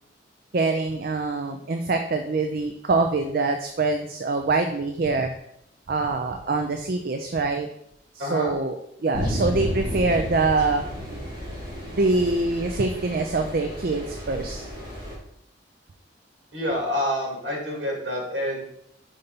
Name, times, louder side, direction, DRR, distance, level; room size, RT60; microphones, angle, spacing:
voice 1, 0.5-5.3 5.9-7.7 8.1-10.8 11.1-11.2 11.9-14.6, right 3 dB, 50° right, 5 dB, 0.5 m, -24 dB
voice 2, 8.2-8.5 16.5-18.6, equal, 65° right, -2 dB, 2.3 m, -27 dB
sound 1, 9.1-15.2, equal, 25° right, 2.4 m, -32 dB
5.4 x 4.1 x 5.2 m, 0.74 s
head